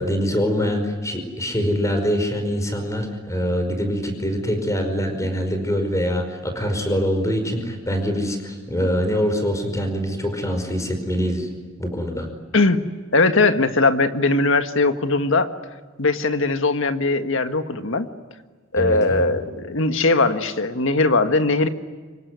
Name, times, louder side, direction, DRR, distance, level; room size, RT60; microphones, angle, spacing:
voice 1, 0.0-11.5 11.8-12.3 18.8-19.2, equal, 15° left, 6 dB, 5.1 m, -24 dB
voice 2, 13.1-15.5 16.0-18.0 18.7-21.7, left 3 dB, 65° left, 8 dB, 1.7 m, -20 dB
26.0 x 23.5 x 9.7 m, 1.4 s
head